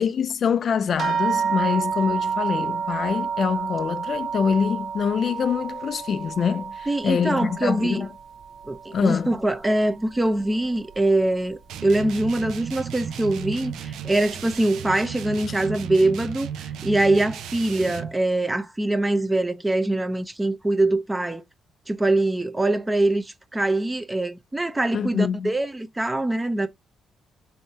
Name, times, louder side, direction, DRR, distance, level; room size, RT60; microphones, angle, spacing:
voice 1, 0.0-8.1 8.9-9.4 24.9-25.5, left 6 dB, 55° left, 0.4 m, -25 dB
sound 1, 1.0-9.8 10.1-11.0 11.8-11.9 12.3-12.4, right 6 dB, 55° right, 0.9 m, -30 dB
voice 2, 6.9-8.1 8.7-21.4 21.9-26.7, right 2 dB, 15° right, 0.7 m, -23 dB
sound 2, 11.7-18.2, right 8 dB, 80° right, 0.4 m, -34 dB
3.5 x 2.7 x 4.1 m
cardioid pair, 90°, 0 cm